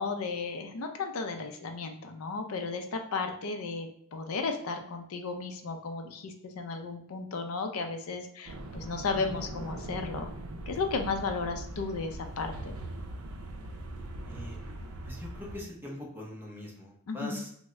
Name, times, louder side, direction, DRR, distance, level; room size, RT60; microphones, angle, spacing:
voice 1, 0.0-10.3 10.7-12.8 17.1-17.4, left 4 dB, 85° left, 5 dB, 0.4 m, -34 dB
sound 1, 8.5-15.6, right 1 dB, 75° right, 0.5 m, -40 dB
voice 2, 14.3-14.6 15.0-17.5, left 1 dB, 10° right, -2 dB, 0.6 m, -42 dB
3.5 x 2.0 x 3.1 m, 0.66 s
head